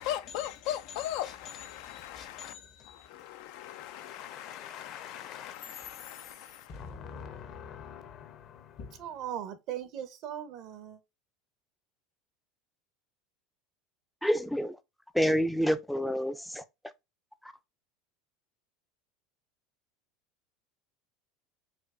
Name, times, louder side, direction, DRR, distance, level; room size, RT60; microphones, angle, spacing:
voice 1, 0.0-2.5 2.9-6.8, left 12 dB, 70° left, 0.3 m, -39 dB
voice 2, 1.7-3.1 3.5-5.5 6.7-9.0, left 7 dB, 50° left, 0.7 m, -46 dB
voice 3, 9.0-11.0, right 10 dB, 55° right, 0.7 m, -38 dB
voice 4, 14.2-14.7 15.2-16.6, equal, ahead, 0.4 m, -28 dB
4.3 x 2.3 x 2.4 m
hypercardioid pair, 95°, 0 cm